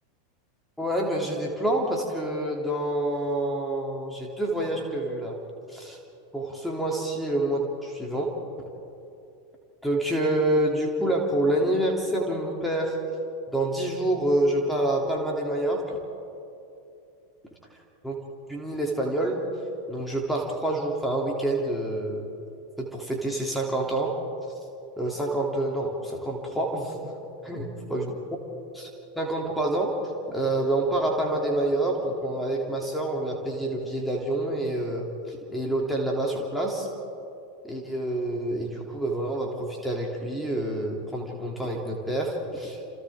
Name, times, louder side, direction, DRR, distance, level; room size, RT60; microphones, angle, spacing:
voice 1, 0.8-5.4 5.7-6.0 6.3-8.3 9.8-13.0 13.5-16.0 18.0-18.2 18.5-19.4 19.9-22.3 22.8-24.1 25.0-27.1 27.4-28.1 28.7-28.9 29.1-30.0 30.3-36.9 37.6-42.8, right 1 dB, ahead, -1 dB, 3.0 m, -27 dB
29.5 x 29.0 x 3.7 m, 2.7 s
figure-of-eight pair, 85°, 0 cm